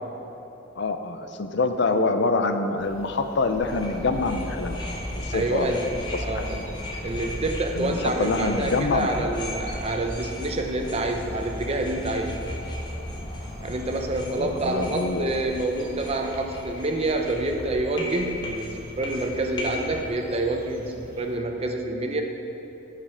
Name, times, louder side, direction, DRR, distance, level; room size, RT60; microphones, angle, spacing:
voice 1, 0.8-4.8 5.1-5.7 6.3-6.5 7.7-9.3 13.6-13.7 14.4-15.3, left 3 dB, 60° left, 7 dB, 0.6 m, -26 dB
sound 1, 2.8-21.4, equal, 50° right, 1.1 m, -41 dB
sound 2, 3.6-20.1, left 1 dB, 25° left, 1.0 m, -37 dB
voice 2, 5.3-5.9 6.2-6.6 7.0-12.4 13.6-22.2, right 2 dB, 30° right, 4 dB, 0.7 m, -27 dB
11.5 x 5.0 x 5.7 m, 3.0 s
head